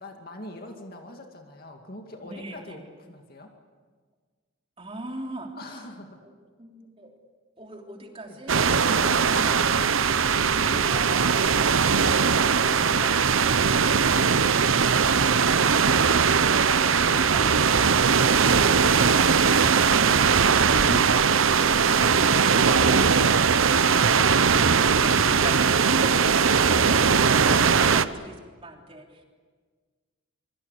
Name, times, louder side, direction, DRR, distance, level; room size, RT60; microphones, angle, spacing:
voice 1, 0.0-3.5 5.6-6.2 8.3-8.4 8.8-9.5 15.2-15.5 20.8-21.3 22.1-23.6 26.0-26.3, left 1 dB, 45° left, 3 dB, 2.4 m, -41 dB
voice 2, 2.2-2.8 4.8-5.5 6.2-6.3 6.6-7.1 7.6-9.6 24.8-29.2, right 1 dB, 25° right, 1 dB, 3.4 m, -41 dB
sound 1, 8.5-28.1, right 6 dB, 70° right, 0.8 m, -20 dB
25.0 x 23.5 x 8.3 m, 1.5 s
head